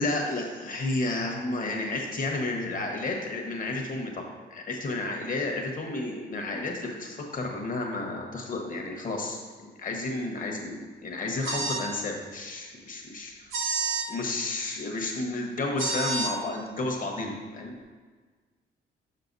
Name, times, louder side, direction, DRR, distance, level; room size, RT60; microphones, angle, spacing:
voice 1, 0.0-13.5 14.1-17.7, left 2 dB, 45° left, 1 dB, 1.1 m, -32 dB
sound 1, 11.4-11.9 13.5-14.1 15.8-16.3, right 3 dB, 85° right, 0.9 m, -29 dB
6.6 x 5.6 x 2.6 m, 1.4 s
cardioid pair, 90°, 20 cm